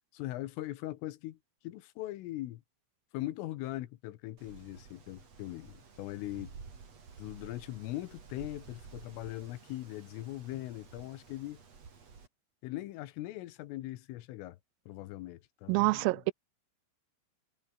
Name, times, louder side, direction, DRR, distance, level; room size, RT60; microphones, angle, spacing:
voice 1, 0.1-1.4 1.6-2.6 3.1-6.6 7.2-11.6 12.6-14.6 14.9-16.3, left 16 dB, 75° left, 3.7 m, -40 dB
Wind, 4.4-12.3, right 5 dB, 35° right, 4.2 m, -53 dB
voice 2, 15.7-16.3, right 24 dB, 85° right, 3.2 m, -27 dB
omnidirectional pair, 6.0 m